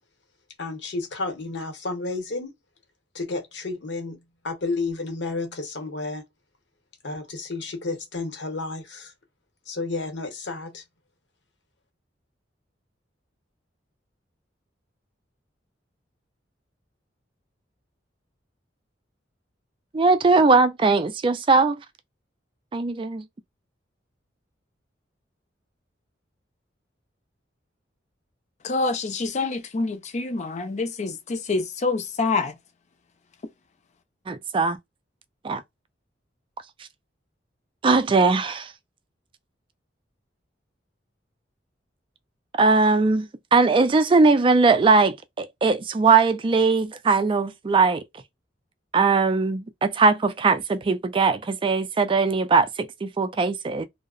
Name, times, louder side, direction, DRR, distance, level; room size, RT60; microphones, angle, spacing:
voice 1, 0.6-2.5 3.1-6.2 7.0-9.1 9.7-10.8, left 3 dB, 70° left, 0.9 m, -31 dB
voice 2, 19.9-21.8 22.7-23.3 34.3-34.8 35.4-35.6 37.8-38.7 42.5-48.0 48.9-53.8, right 4 dB, 30° right, 0.3 m, -20 dB
voice 3, 28.6-32.5, left 3 dB, 40° left, 0.5 m, -26 dB
2.7 x 2.0 x 2.4 m
head